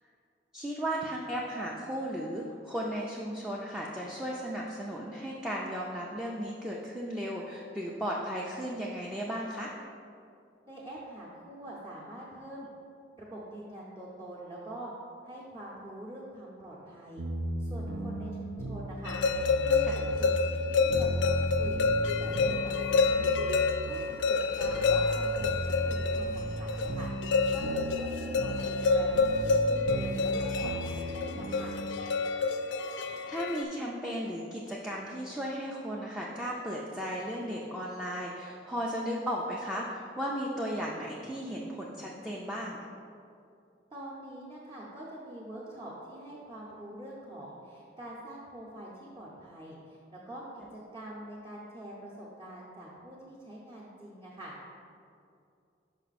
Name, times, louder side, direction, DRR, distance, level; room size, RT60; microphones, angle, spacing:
voice 1, 0.5-9.7 19.9-20.0 33.3-42.9, equal, 5° right, -4 dB, 0.4 m, -35 dB
voice 2, 10.7-12.7 13.2-14.9 15.2-17.2 17.6-19.2 19.6-21.9 22.2-23.2 23.8-31.7 43.9-54.7, right 1 dB, 25° right, -7 dB, 0.8 m, -45 dB
sound 1, 17.2-32.0, right 1 dB, 75° right, 0.6 m, -36 dB
sound 2, 19.1-33.6, left 4 dB, 80° left, 0.4 m, -28 dB
5.6 x 5.3 x 4.1 m, 2.5 s
head